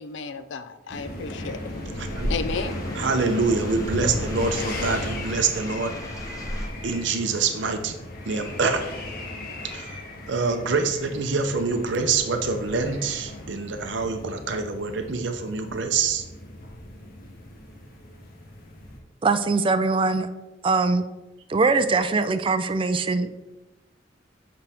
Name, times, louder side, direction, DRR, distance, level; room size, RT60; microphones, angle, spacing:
voice 1, 0.0-1.7 2.3-2.8, left 5 dB, 70° left, 11 dB, 0.5 m, -33 dB
sound 1, 0.9-19.0, left 1 dB, 50° left, 1.2 m, -36 dB
sound 2, 1.7-6.7, equal, 20° left, 1.1 m, -35 dB
voice 2, 3.0-6.0 6.8-7.9 8.2-8.9 9.6-10.0 10.3-16.2, right 4 dB, 70° right, 7 dB, 0.6 m, -25 dB
voice 3, 19.2-20.3 20.6-21.1 21.5-23.3, right 3 dB, 30° right, 10 dB, 0.4 m, -22 dB
8.3 x 5.2 x 3.5 m, 1.0 s
head